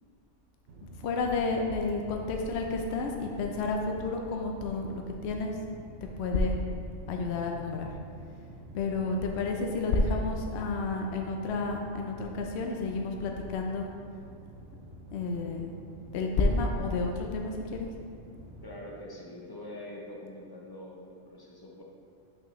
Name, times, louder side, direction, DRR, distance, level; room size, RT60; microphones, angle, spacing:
sound 1, 0.7-18.7, right 2 dB, 60° right, 1.0 m, -48 dB
voice 1, 1.0-5.5 6.0-6.6 7.1-7.9 8.7-13.9 15.1-15.7 16.1-17.9, left 3 dB, 65° left, 2 dB, 0.8 m, -30 dB
voice 2, 18.6-21.8, left 1 dB, 25° left, -3 dB, 0.5 m, -44 dB
5.8 x 5.5 x 3.1 m, 2.4 s
omnidirectional pair, 1.4 m